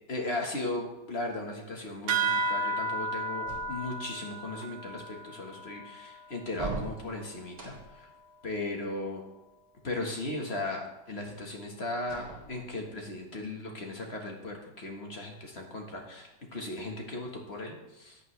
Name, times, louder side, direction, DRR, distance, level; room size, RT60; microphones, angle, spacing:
voice 1, 0.1-8.1 8.4-9.2 9.8-18.2, left 2 dB, 35° left, 1 dB, 1.7 m, -37 dB
sound 1, 2.1-7.0, right 3 dB, 70° right, 1.3 m, -33 dB
sound 2, 3.5-4.2 6.5-8.1 12.0-13.0, right 3 dB, 25° right, 1.6 m, -40 dB
14.0 x 8.7 x 3.3 m, 0.93 s
omnidirectional pair, 1.9 m